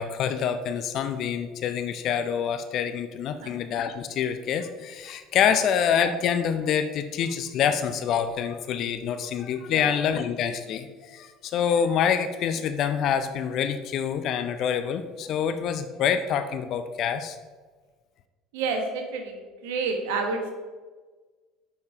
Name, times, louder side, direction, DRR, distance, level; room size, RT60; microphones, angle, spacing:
voice 1, 0.0-17.4, left 8 dB, 55° left, 10 dB, 0.5 m, -26 dB
voice 2, 18.5-20.5, right 4 dB, 75° right, 3 dB, 1.3 m, -29 dB
7.0 x 5.3 x 4.6 m, 1.4 s
hypercardioid pair, 70°, 0 cm